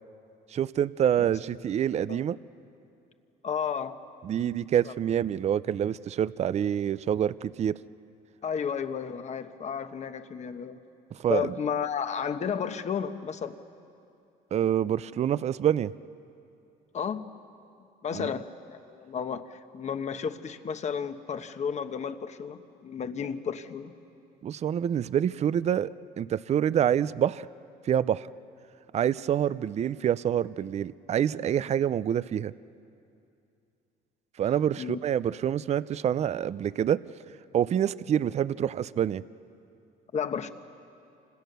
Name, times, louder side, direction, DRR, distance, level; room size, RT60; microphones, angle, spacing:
voice 1, 0.5-2.4 4.2-7.8 11.1-11.5 14.5-15.9 18.1-18.3 24.4-27.5 27.8-28.3 28.9-32.5 34.4-37.0 37.5-39.2, right 9 dB, 40° right, 17 dB, 0.5 m, -27 dB
voice 2, 3.4-4.0 4.8-4.9 8.4-10.8 11.3-13.6 16.9-17.4 18.0-23.9 34.8-35.0 40.1-40.5, left 7 dB, 40° left, 9 dB, 1.3 m, -32 dB
29.0 x 26.0 x 6.8 m, 2.6 s
cardioid pair, 110°, 17 cm